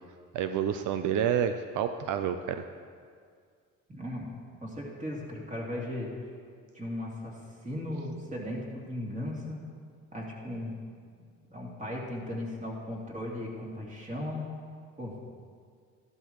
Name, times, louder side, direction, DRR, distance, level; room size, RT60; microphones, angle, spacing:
voice 1, 0.3-2.6, right 8 dB, 80° right, 8 dB, 0.5 m, -29 dB
voice 2, 3.9-4.3 4.6-6.1 6.7-7.3 7.6-9.6 10.1-10.7 11.5-14.4 15.0-15.2, left 1 dB, 25° right, -3 dB, 2.9 m, -36 dB
14.0 x 11.5 x 3.1 m, 2.1 s
cardioid pair, 90°, 30 cm